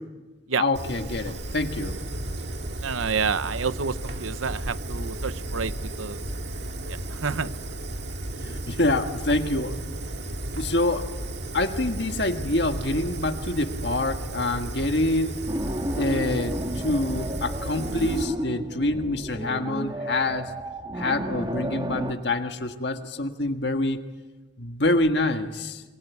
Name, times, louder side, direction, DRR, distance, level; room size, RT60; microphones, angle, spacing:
voice 1, 0.6-2.0 8.4-9.8 10.5-11.1 11.5-15.4 16.0-20.5 20.9-24.0 24.6-25.8, left 2 dB, 55° left, 6 dB, 1.6 m, -26 dB
Fire, 0.7-18.2, right 1 dB, 55° right, 1.9 m, -34 dB
voice 2, 2.8-5.7 6.0-6.2 7.1-7.5, right 5 dB, 85° right, 14 dB, 0.9 m, -28 dB
sound 1, 15.5-22.1, right 1 dB, 20° right, 1.4 m, -32 dB
27.5 x 24.0 x 8.4 m, 1.2 s
head